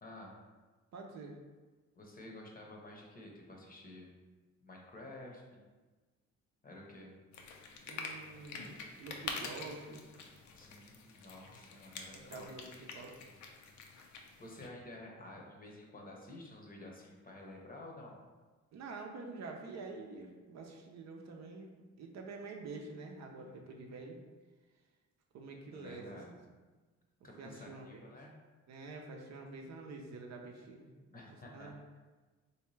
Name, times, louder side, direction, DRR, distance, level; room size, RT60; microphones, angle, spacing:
voice 1, 0.0-0.3 2.0-4.1 4.6-5.6 6.6-7.1 10.5-12.5 14.4-18.2 25.7-26.3 27.2-28.3 31.1-31.7, left 1 dB, 30° left, -1 dB, 0.7 m, -51 dB
voice 2, 0.9-1.4 7.9-10.0 12.1-13.3 18.7-24.2 25.3-26.2 27.4-28.1 28.7-30.9 31.3-31.8, right 3 dB, 60° right, 1 dB, 0.6 m, -47 dB
sound 1, 7.3-14.7, left 4 dB, 75° left, 0.6 m, -47 dB
3.3 x 2.7 x 3.1 m, 1.3 s
cardioid pair, 90°, 30 cm